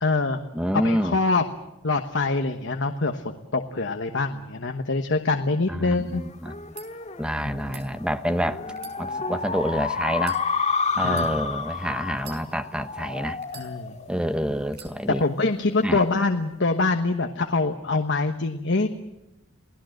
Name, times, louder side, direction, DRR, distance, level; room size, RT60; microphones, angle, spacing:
voice 1, 0.0-0.4 0.7-1.4 1.8-6.3 7.4-7.9 11.0-11.4 13.5-13.9 15.2-18.9, left 3 dB, 60° left, 6 dB, 1.2 m, -25 dB
voice 2, 0.5-1.2 5.7-6.8 7.2-8.6 9.0-10.4 11.0-13.4 14.1-15.2 15.8-16.0, equal, 5° right, 9 dB, 0.9 m, -27 dB
sound 1, 6.1-15.0, left 5 dB, 30° left, 1.9 m, -30 dB
sound 2, 6.7-6.9 7.6-7.9 8.7-9.6 10.2-10.4 11.1-11.3 12.1-12.8 13.4-14.1 14.7-14.9, right 7 dB, 50° right, 5.6 m, -45 dB
28.5 x 18.0 x 7.9 m, 0.96 s
head